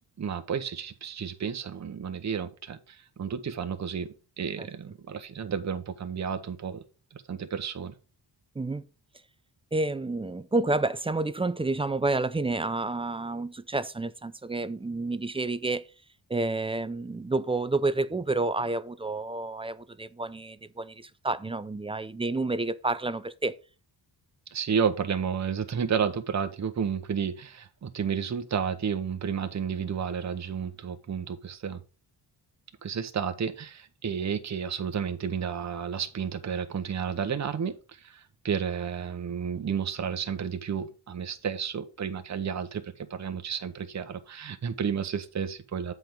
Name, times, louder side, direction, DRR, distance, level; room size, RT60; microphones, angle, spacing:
voice 1, 0.2-4.1 4.4-6.8 7.1-7.9 24.5-31.8 32.8-45.9, right 7 dB, 40° right, 0.9 m, -31 dB
voice 2, 9.7-15.9 16.3-23.5, right 2 dB, 15° right, 0.4 m, -29 dB
7.7 x 4.6 x 5.0 m
cardioid pair, 95°, 44 cm